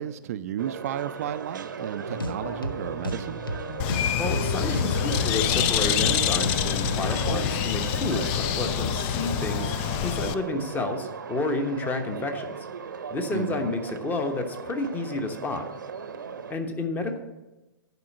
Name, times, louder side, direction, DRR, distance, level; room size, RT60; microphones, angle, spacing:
voice 1, 0.0-3.4 13.3-13.7, right 10 dB, 45° right, 13 dB, 0.4 m, -33 dB
sound 1, 0.6-16.5, right 6 dB, 65° right, 0.8 m, -37 dB
sound 2, 2.1-7.6, equal, 85° left, 0.8 m, -34 dB
Bird, 3.8-10.3, left 10 dB, 35° left, 0.5 m, -26 dB
voice 2, 3.9-12.5 13.1-15.7 16.5-17.2, left 2 dB, 15° left, 6 dB, 1.1 m, -30 dB
11.0 x 5.1 x 7.2 m, 1.1 s
figure-of-eight pair, 110°, 11 cm